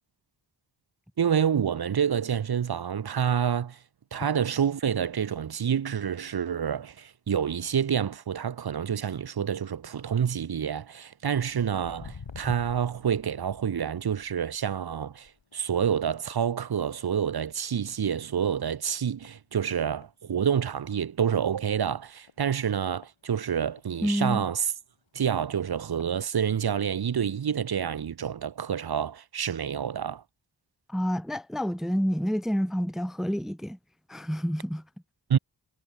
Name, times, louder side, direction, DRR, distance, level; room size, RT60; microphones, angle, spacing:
voice 1, 1.2-3.8 4.1-24.7 25.1-30.2 35.3-35.4, right 8 dB, 55° right, 0.8 m, -28 dB
Walk footsteps, 11.3-18.0 18.3-18.7 19.2-19.3 20.0-20.1 20.5-20.6 20.8-20.9 21.4-21.6 22.3-23.9 24.5-24.6 25.3-25.4 25.8-26.1 26.7-26.8, left 5 dB, 90° left, 5.6 m, -48 dB
voice 2, 24.0-24.5 30.9-33.8 34.1-34.8, equal, ahead, 0.7 m, -28 dB
cardioid pair, 45°, 44 cm